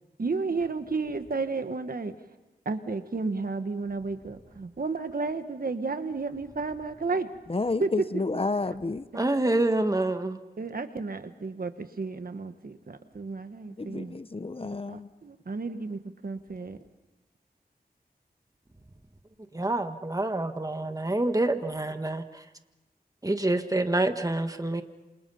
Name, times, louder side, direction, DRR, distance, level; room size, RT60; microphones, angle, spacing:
voice 1, 0.2-2.1 2.6-7.3 7.8-7.9 8.3-8.4 9.1-9.3 10.6-14.2 14.9-16.8, right 4 dB, 65° right, 9 dB, 1.5 m, -32 dB
voice 2, 7.5-9.1 13.8-15.1, left 3 dB, 35° left, 13 dB, 0.8 m, -30 dB
voice 3, 9.1-10.4 19.5-22.4 23.2-24.8, right 2 dB, 20° right, 8 dB, 1.6 m, -27 dB
28.0 x 27.5 x 5.7 m, 1.1 s
wide cardioid pair, 85°, 17 cm